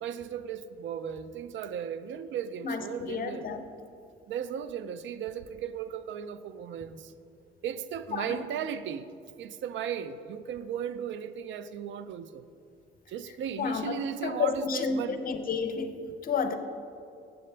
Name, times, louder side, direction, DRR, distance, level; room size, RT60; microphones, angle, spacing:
voice 1, 0.0-3.5 4.3-7.1 7.6-9.1 9.4-12.5 13.1-15.2, right 8 dB, 70° right, 13 dB, 0.4 m, -36 dB
voice 2, 2.6-3.6 8.1-8.4 13.6-13.9 14.2-16.5, left 5 dB, 45° left, 8 dB, 0.7 m, -31 dB
7.7 x 7.6 x 3.3 m, 2.5 s
cardioid pair, 90°, 20 cm